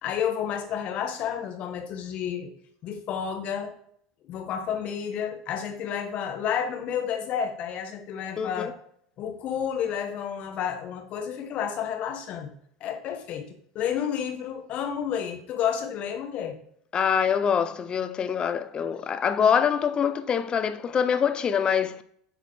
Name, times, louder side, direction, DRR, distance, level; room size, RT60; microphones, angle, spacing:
voice 1, 0.0-2.5 2.8-3.7 4.3-8.7 9.2-12.5 12.8-16.6, left 8 dB, 50° left, 1.4 m, -30 dB
voice 2, 8.4-8.7 16.9-22.0, left 7 dB, 30° left, 0.7 m, -24 dB
8.8 x 4.9 x 3.3 m
hypercardioid pair, 85°, 3 cm